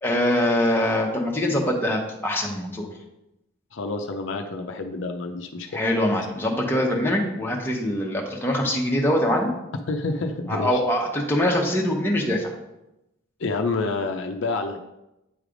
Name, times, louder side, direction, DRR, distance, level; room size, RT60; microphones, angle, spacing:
voice 1, 0.0-2.9 5.7-9.5 10.5-12.5, left 1 dB, 10° left, -2 dB, 1.0 m, -23 dB
voice 2, 3.7-5.7 9.9-10.8 13.4-14.8, left 3 dB, 65° left, 4 dB, 0.5 m, -28 dB
8.6 x 3.3 x 5.0 m, 0.90 s
head